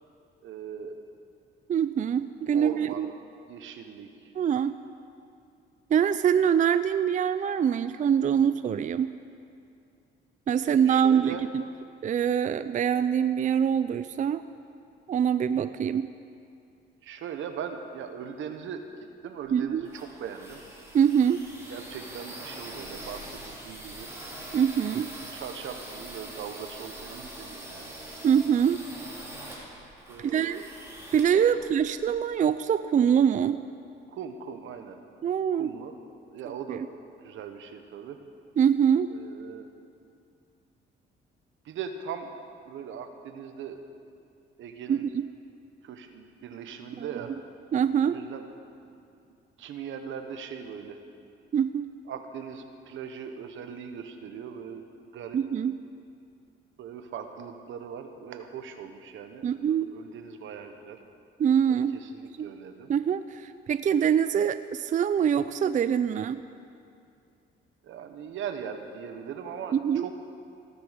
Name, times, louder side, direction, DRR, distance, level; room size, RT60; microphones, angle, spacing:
voice 1, 0.4-1.0 2.5-3.1 3.5-4.3 10.6-11.5 17.0-18.8 19.2-20.6 21.7-24.1 25.3-27.9 30.1-30.7 31.5-31.7 34.1-35.0 35.5-36.0 36.3-36.9 37.2-38.2 39.1-39.7 41.6-42.3 42.6-43.8 44.6-45.1 45.8-47.3 48.0-48.5 48.8-49.0 49.6-51.0 52.1-54.8 55.1-55.4 56.8-61.0 61.7-62.9 67.8-70.1, right 7 dB, 80° right, 7 dB, 1.2 m, -40 dB
voice 2, 1.7-3.1 4.4-4.7 5.9-9.1 10.5-11.6 12.0-14.4 15.1-16.1 19.5-19.9 20.9-21.4 24.5-25.1 28.2-28.8 30.2-30.6 31.1-33.6 35.2-35.7 36.7-36.8 38.6-39.1 44.9-45.3 47.0-47.1 47.7-48.2 51.5-51.9 55.3-55.8 59.4-59.9 61.4-62.0 62.4-62.5 62.9-66.4 69.7-70.0, right 8 dB, 40° right, 12 dB, 0.4 m, -24 dB
sound 1, 19.5-32.2, right 1 dB, 15° right, 4.4 m, -43 dB
16.5 x 13.0 x 5.2 m, 2.5 s
cardioid pair, 90°, 20 cm